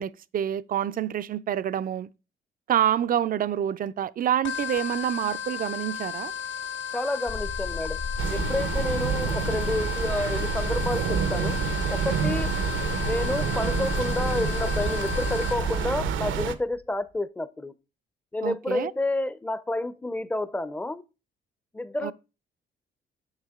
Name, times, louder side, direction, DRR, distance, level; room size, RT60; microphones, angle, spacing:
voice 1, 0.0-2.1 2.7-6.3 18.4-18.9 22.0-22.1, right 10 dB, 45° right, 0.4 m, -27 dB
sound 1, 4.4-15.9, left 7 dB, 70° left, 0.9 m, -35 dB
voice 2, 6.9-8.0 8.3-11.6 11.9-12.5 13.0-17.7 18.3-21.0 21.7-22.1, left 2 dB, 5° left, 0.5 m, -29 dB
sound 2, 7.3-16.8, left 4 dB, 40° left, 1.0 m, -35 dB
sound 3, 8.2-16.5, right 8 dB, 80° right, 0.8 m, -28 dB
7.4 x 6.4 x 3.6 m
cardioid pair, 90°, 20 cm